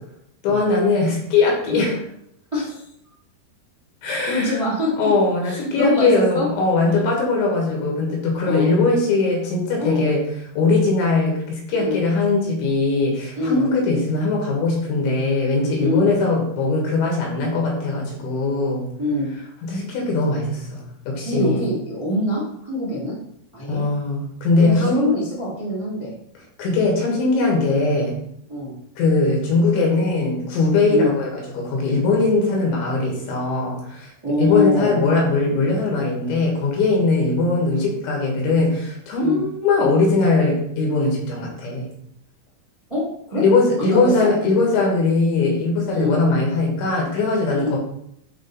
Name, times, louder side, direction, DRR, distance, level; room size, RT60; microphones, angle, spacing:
voice 1, 0.4-1.9 4.0-4.6 5.0-10.2 10.6-18.9 19.6-21.7 23.7-25.1 26.6-28.2 29.0-34.1 34.4-41.9 43.4-47.8, left 3 dB, 80° left, -1 dB, 3.9 m, -20 dB
voice 2, 2.5-2.8 4.1-4.9 5.4-6.5 6.8-7.1 8.4-8.7 9.8-10.1 11.7-12.0 13.3-13.7 15.8-16.1 19.0-19.3 21.2-23.2 23.5-23.8 24.6-26.1 28.5-28.7 30.9-31.1 34.2-35.0 39.2-39.4 42.9-43.4 43.8-44.1 45.9-46.1 47.5-47.8, left 2 dB, 15° right, -8 dB, 1.1 m, -24 dB
8.6 x 3.3 x 4.0 m, 0.72 s
omnidirectional pair, 5.2 m